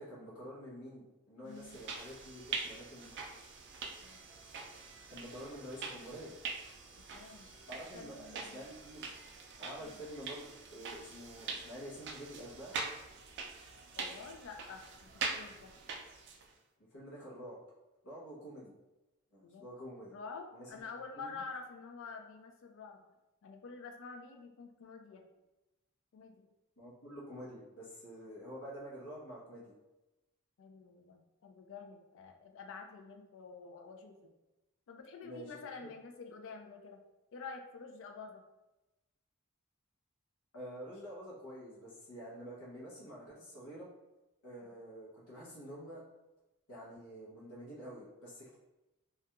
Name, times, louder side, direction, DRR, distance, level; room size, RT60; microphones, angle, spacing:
voice 1, 0.0-3.1 5.1-6.3 7.7-9.1 9.6-12.8 16.9-17.6 18.0-18.7 19.3-20.1 20.5-20.8 21.1-21.4 26.8-29.7 35.2-35.9 40.5-43.9 44.4-46.0 46.7-48.6, equal, 80° left, -6 dB, 0.7 m, -48 dB
voice 2, 1.4-1.8 4.0-4.2 7.1-7.5 7.9-8.6 9.8-10.0 14.0-15.7 19.4-19.7 20.1-23.0 23.4-25.3 26.1-26.5 30.6-34.3 34.9-37.0 37.3-38.4 44.6-44.8, left 4 dB, 65° left, 4 dB, 0.4 m, -48 dB
sound 1, 1.5-16.5, right 4 dB, 55° right, 0.3 m, -44 dB
2.3 x 2.2 x 2.8 m, 1.0 s
head